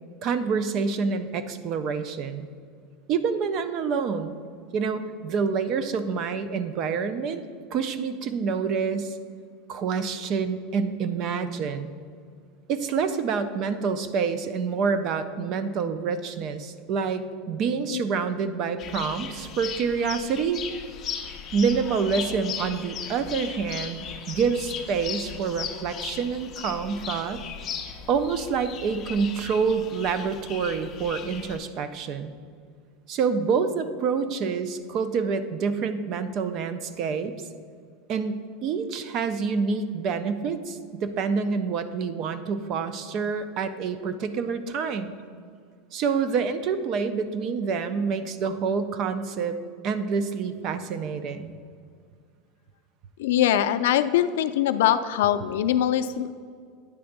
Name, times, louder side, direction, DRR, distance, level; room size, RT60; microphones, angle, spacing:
voice 1, 0.2-2.5 3.1-4.4 4.7-7.4 7.7-9.2 9.7-11.9 12.7-20.6 21.5-27.4 28.1-32.3 33.1-37.3 38.1-45.1 45.9-51.5, right 5 dB, 35° right, 11 dB, 0.4 m, -27 dB
sound 1, 18.8-31.6, left 7 dB, 25° left, 0.6 m, -37 dB
voice 2, 53.2-56.3, left 11 dB, 80° left, 11 dB, 0.4 m, -23 dB
9.5 x 3.4 x 6.5 m, 2.1 s
supercardioid pair, 175°, 0 cm